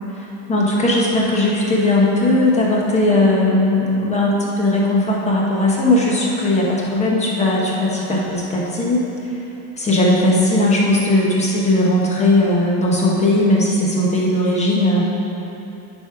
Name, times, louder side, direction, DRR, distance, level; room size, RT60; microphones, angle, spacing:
voice 1, 0.1-9.0 9.8-15.1, left 1 dB, 15° left, -4 dB, 1.2 m, -18 dB
10.5 x 4.9 x 4.8 m, 3.0 s
supercardioid pair, 150°, 45 cm